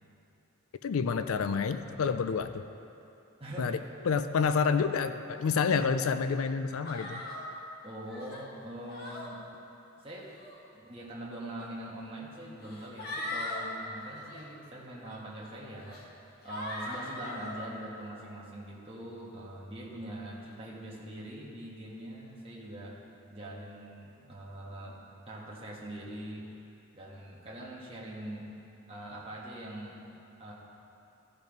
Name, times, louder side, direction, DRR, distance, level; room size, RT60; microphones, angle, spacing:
voice 1, 0.8-2.6 3.6-7.2, left 5 dB, 75° left, 10 dB, 0.4 m, -29 dB
voice 2, 3.4-3.8 7.8-9.4 10.0-10.3 10.7-16.0 16.4-23.0 23.3-25.0 25.3-26.5 26.9-28.5 28.9-30.0 30.4-30.5, right 1 dB, 25° right, -5 dB, 1.4 m, -43 dB
sound 1, 6.8-7.5 8.1-8.4 8.9-9.3 10.2-10.6 11.6-11.7 12.6-13.6 14.0-14.4 15.0-15.2 15.8-16.0 16.4-17.6, left 1 dB, 45° left, 1.4 m, -39 dB
15.0 x 5.3 x 5.2 m, 2.7 s
head